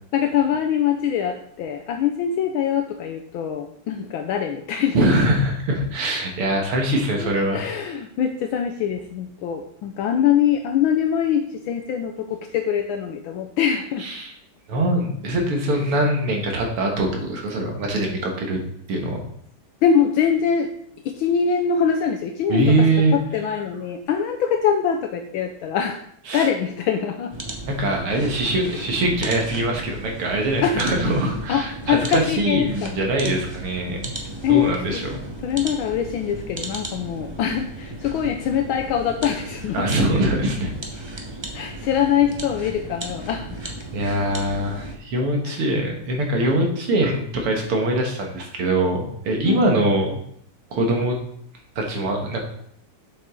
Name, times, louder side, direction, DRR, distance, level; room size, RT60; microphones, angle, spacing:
voice 1, 0.1-5.0 7.2-14.1 15.8-15.9 19.8-20.7 21.0-22.9 23.1-26.0 26.3-27.3 28.7-28.9 30.6-30.9 31.5-33.2 34.4-34.7 35.4-40.1 41.5-43.5 45.4-45.6 49.4-49.7, left 8 dB, 75° left, 5 dB, 1.4 m, -23 dB
voice 2, 4.9-7.6 14.0-14.3 14.7-18.6 18.9-19.2 22.5-23.2 26.3-26.5 27.7-34.1 34.5-35.2 39.7-40.7 43.9-50.1 50.7-51.2 51.8-52.4, right 1 dB, 80° right, 1 dB, 2.5 m, -22 dB
sound 1, 27.3-45.0, right 1 dB, 30° right, 0.5 m, -35 dB
7.7 x 6.7 x 3.7 m, 0.68 s
omnidirectional pair, 2.4 m